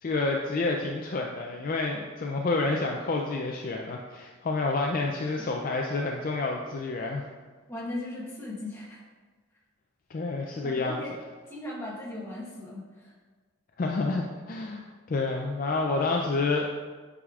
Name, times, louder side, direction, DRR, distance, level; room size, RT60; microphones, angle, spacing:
voice 1, 0.0-7.3 10.1-11.0 13.8-16.7, left 3 dB, 40° left, 1 dB, 0.3 m, -29 dB
voice 2, 7.7-9.0 10.5-11.1 11.5-13.1, left 1 dB, 10° left, -5 dB, 1.1 m, -38 dB
8.3 x 4.8 x 2.4 m, 1.4 s
head